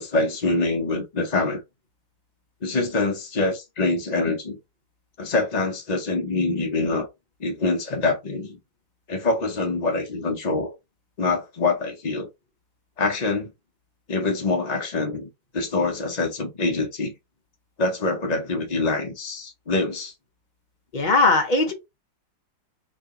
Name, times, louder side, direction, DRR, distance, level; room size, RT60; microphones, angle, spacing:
voice 1, 0.0-1.6 2.6-4.6 5.2-7.1 7.4-8.6 9.1-10.7 11.2-12.3 13.0-13.5 14.1-17.1 17.8-20.1, left 3 dB, 75° left, 0.3 m, -25 dB
voice 2, 20.9-21.7, left 3 dB, 40° left, 0.7 m, -19 dB
3.2 x 2.8 x 3.6 m
omnidirectional pair, 2.0 m